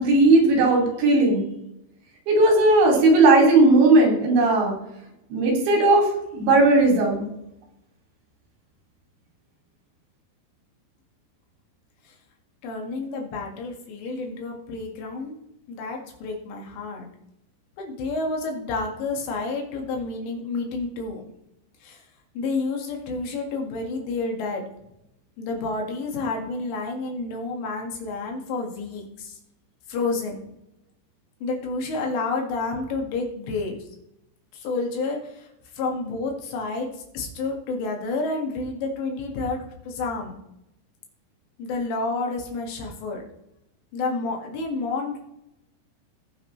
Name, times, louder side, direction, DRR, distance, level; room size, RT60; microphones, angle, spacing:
voice 1, 0.0-1.4 2.3-4.7 5.3-6.1 6.3-7.3, right 2 dB, 80° right, 0 dB, 5.1 m, -17 dB
voice 2, 12.6-15.4 15.7-17.1 17.8-21.3 21.8-22.0 22.4-24.6 25.4-29.4 29.9-30.4 31.4-33.8 34.5-35.5 35.7-40.4 41.6-43.2 43.9-45.2, left 3 dB, 75° left, 1 dB, 4.1 m, -29 dB
18.0 x 6.5 x 3.2 m, 0.83 s
omnidirectional pair, 5.1 m